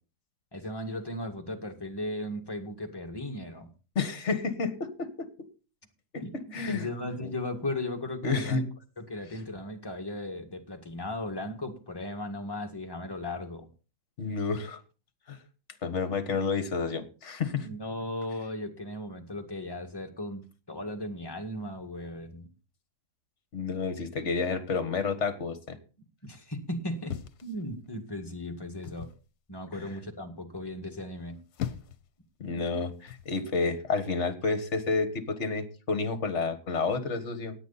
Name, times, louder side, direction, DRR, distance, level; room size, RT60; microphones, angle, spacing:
voice 1, 0.5-3.7 6.2-6.4 6.7-8.6 9.0-13.7 17.5-22.5 26.2-27.2 27.4-29.1 29.5-31.4, left 1 dB, 15° left, 3 dB, 1.8 m, -36 dB
voice 2, 3.9-5.3 6.1-6.9 7.2-7.3 8.2-8.7 14.2-14.8 15.3-15.4 15.8-17.7 23.5-25.8 29.7-29.9 32.4-37.5, left 4 dB, 45° left, 11 dB, 1.8 m, -30 dB
sound 1, 27.1-28.1 28.8-29.2 31.2-32.1 33.1-33.3, left 10 dB, 70° left, 1.4 m, -39 dB
17.0 x 9.3 x 4.1 m, 0.35 s
omnidirectional pair, 1.8 m